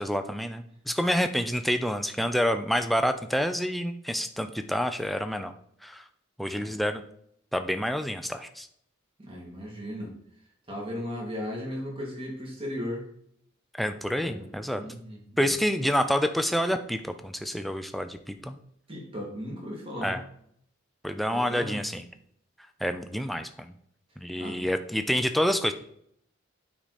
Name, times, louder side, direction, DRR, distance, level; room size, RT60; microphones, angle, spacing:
voice 1, 0.0-5.5 5.8-6.0 6.4-7.0 7.5-8.7 13.8-14.8 15.4-18.6 20.0-20.2 21.0-22.1 22.8-23.7 24.2-25.7, equal, ahead, 7 dB, 0.5 m, -28 dB
voice 2, 9.2-10.1 10.7-13.0 14.2-14.5 14.7-15.6 18.9-20.2 21.5-21.9 24.4-24.7, equal, 25° right, -2 dB, 2.4 m, -36 dB
9.1 x 4.9 x 4.2 m, 0.70 s
head